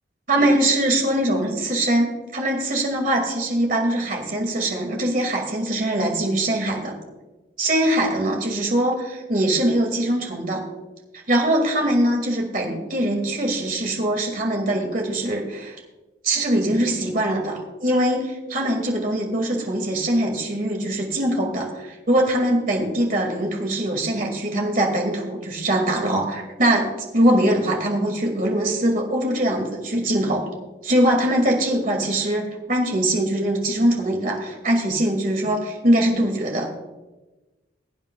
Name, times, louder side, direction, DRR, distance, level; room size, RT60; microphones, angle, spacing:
voice 1, 0.3-6.9 7.6-10.6 11.3-15.8 16.2-26.9 27.1-30.5 30.8-36.8, right 1 dB, 45° right, 1 dB, 2.2 m, -22 dB
21.5 x 9.0 x 2.3 m, 1.1 s
head